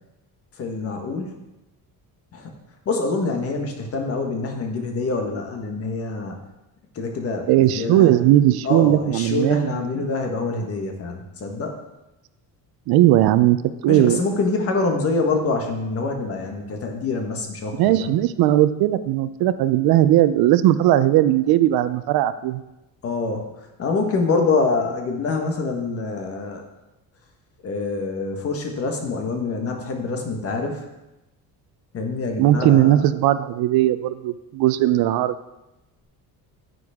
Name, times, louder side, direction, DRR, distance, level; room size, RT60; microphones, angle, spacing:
voice 1, 0.6-1.3 2.3-2.5 2.8-6.4 6.9-8.2 8.6-11.7 13.9-18.2 23.0-23.5 23.8-26.6 27.6-30.8 31.9-33.0, left 3 dB, 40° left, 3 dB, 1.4 m, -25 dB
voice 2, 7.5-9.9 12.9-13.6 13.8-14.2 17.8-22.6 32.4-35.3, right 13 dB, 75° right, 13 dB, 0.6 m, -18 dB
10.0 x 9.5 x 3.6 m, 0.96 s
cardioid pair, 175°, 37 cm